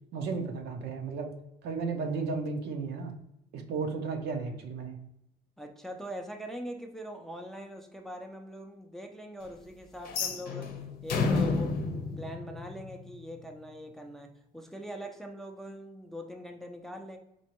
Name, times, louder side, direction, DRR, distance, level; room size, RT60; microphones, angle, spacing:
voice 1, 0.1-1.4 1.6-3.2 3.5-5.1, right 4 dB, 80° right, 4 dB, 0.7 m, -34 dB
voice 2, 5.6-10.8 11.0-17.2, equal, ahead, 3 dB, 0.4 m, -42 dB
sound 1, 10.0-13.1, left 4 dB, 60° left, 0.7 m, -31 dB
4.3 x 2.4 x 3.0 m, 0.83 s
cardioid pair, 110°, 17 cm